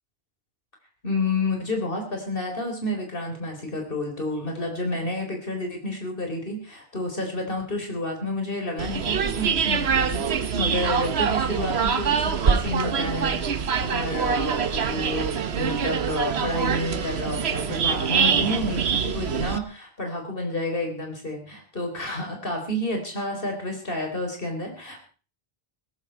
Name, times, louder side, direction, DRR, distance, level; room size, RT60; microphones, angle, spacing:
voice 1, 1.0-25.1, left 1 dB, 60° left, 3 dB, 4.3 m, -30 dB
sound 1, 8.8-19.6, right 6 dB, 85° right, 1.3 m, -24 dB
17.5 x 14.5 x 4.5 m, 0.37 s
omnidirectional pair, 1.0 m